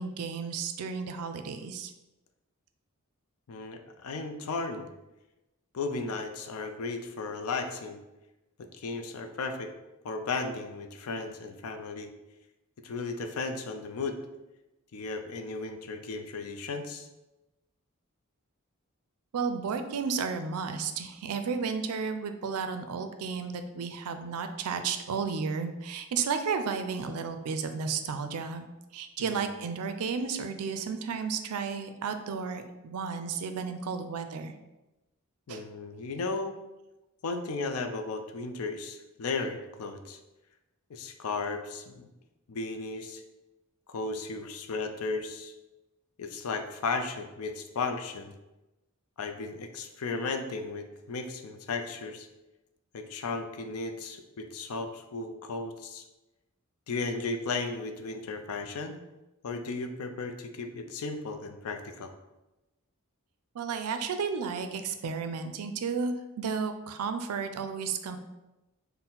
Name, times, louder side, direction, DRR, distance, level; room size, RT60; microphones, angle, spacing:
voice 1, 0.0-1.9 19.3-28.7 28.9-34.5 35.5-35.6 63.5-68.2, right 5 dB, 80° right, 8 dB, 0.4 m, -33 dB
voice 2, 3.5-4.9 5.7-8.0 8.6-9.7 10.0-12.1 12.8-14.2 14.9-17.1 29.2-29.5 35.5-36.6 37.2-40.2 40.9-42.1 42.5-43.2 43.9-45.5 46.2-48.3 49.2-52.3 52.9-56.1 56.9-59.0 59.4-62.1, left 3 dB, 70° left, 6 dB, 0.4 m, -35 dB
4.3 x 2.1 x 3.8 m, 1.0 s
head